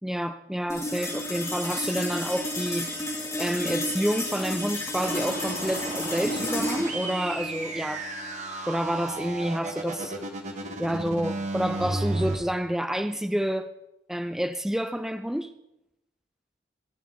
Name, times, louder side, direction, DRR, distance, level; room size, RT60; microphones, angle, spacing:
voice 1, 0.0-3.0 3.4-8.1 8.7-10.2 10.8-13.7 14.1-15.5, equal, 5° right, 9 dB, 0.4 m, -29 dB
sound 1, 0.7-11.3, left 1 dB, 20° left, 2.4 m, -33 dB
sound 2, 5.0-12.4, right 2 dB, 40° right, 1.5 m, -33 dB
23.0 x 8.1 x 3.6 m, 0.87 s
head